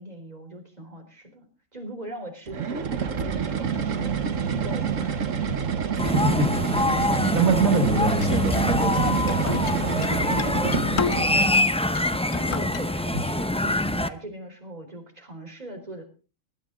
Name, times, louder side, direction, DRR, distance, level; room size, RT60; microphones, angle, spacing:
voice 1, 0.0-1.4 1.7-4.1 4.4-5.3 10.2-11.8 12.3-16.0, right 1 dB, 30° right, 4 dB, 4.0 m, -40 dB
sound 1, 2.5-11.6, right 6 dB, 70° right, 1.6 m, -27 dB
sound 2, 6.0-14.1, left 1 dB, 10° left, 0.3 m, -25 dB
voice 2, 6.0-6.6 7.3-9.7 13.1-13.2, right 3 dB, 85° right, 4 dB, 2.5 m, -25 dB
sound 3, 8.2-11.5 11.9-12.8, left 6 dB, 65° left, 1.4 m, -32 dB
19.5 x 13.5 x 3.9 m, 0.35 s
omnidirectional pair, 1.4 m